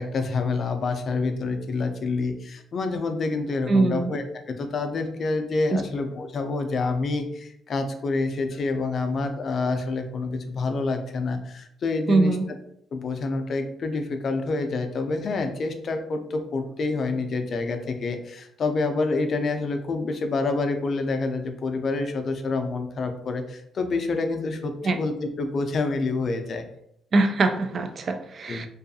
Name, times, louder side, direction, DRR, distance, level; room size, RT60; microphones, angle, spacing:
voice 1, 0.0-4.2 4.6-12.4 12.9-26.6 28.5-28.7, left 3 dB, 55° left, 6 dB, 0.4 m, -27 dB
voice 2, 3.7-4.1 5.7-5.8 12.1-12.5 24.8-25.0 27.1-28.7, right 3 dB, 50° right, 7 dB, 0.3 m, -22 dB
2.6 x 2.3 x 2.6 m, 0.72 s
cardioid pair, 90°, 0 cm